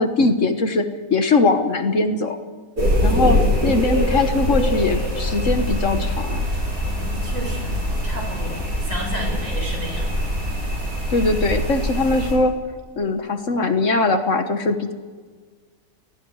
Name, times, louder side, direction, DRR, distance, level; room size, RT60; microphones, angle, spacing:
voice 1, 0.0-2.4 3.0-3.4 3.6-6.5 11.1-12.5 13.0-14.9, left 3 dB, 55° left, 8 dB, 1.6 m, -21 dB
sound 1, 2.8-12.3, equal, 75° right, 7.3 m, -23 dB
voice 2, 3.0-3.7 6.9-10.1, equal, 55° right, 0 dB, 7.1 m, -33 dB
29.0 x 19.0 x 4.9 m, 1.5 s
omnidirectional pair, 1.7 m